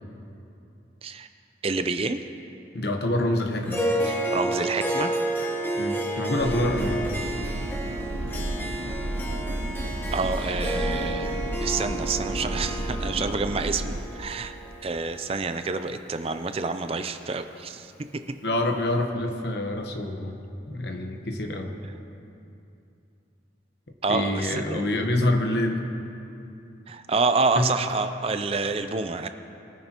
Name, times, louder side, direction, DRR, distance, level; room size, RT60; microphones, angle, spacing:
voice 1, 1.6-2.2 4.0-5.1 10.1-13.8 14.1-14.6 14.8-17.9 24.0-24.8 26.9-29.3, right 4 dB, 30° right, 9 dB, 0.4 m, -28 dB
voice 2, 2.7-3.8 5.8-7.0 18.4-20.4 20.7-21.7 24.1-25.8 27.6-27.7, left 1 dB, 60° left, 3 dB, 1.1 m, -26 dB
Harp, 3.7-16.2, right 1 dB, 10° left, 0.9 m, -31 dB
sound 1, 6.4-14.0, right 1 dB, 80° right, 0.9 m, -31 dB
22.5 x 10.0 x 3.0 m, 2.7 s
head